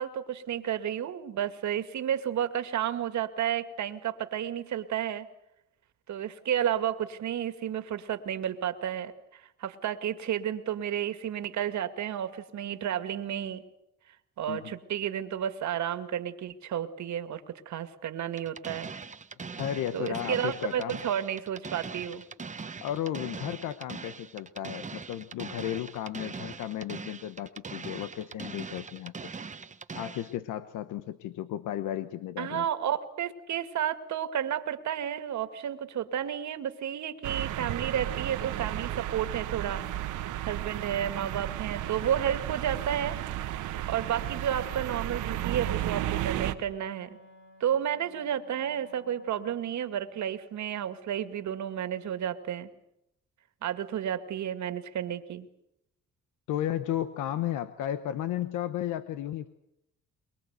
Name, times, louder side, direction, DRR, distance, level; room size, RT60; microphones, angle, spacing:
voice 1, 0.0-5.3 6.1-13.6 14.4-18.9 19.9-22.2 32.4-39.8 40.5-43.2 43.9-47.2 47.6-52.7 53.6-55.5, right 10 dB, 70° right, 10 dB, 2.1 m, -32 dB
sound 1, 18.4-30.4, right 5 dB, 25° right, 1.0 m, -41 dB
voice 2, 19.5-21.0 22.8-29.3 29.9-32.7 56.5-59.5, left 11 dB, 90° left, 12 dB, 1.1 m, -34 dB
sound 2, 37.2-46.5, right 13 dB, 90° right, 1.4 m, -33 dB
Wind instrument woodwind instrument, 43.9-50.0, left 3 dB, 40° left, 2.7 m, -56 dB
23.0 x 22.5 x 8.1 m, 0.81 s
cardioid pair, 90°, 30 cm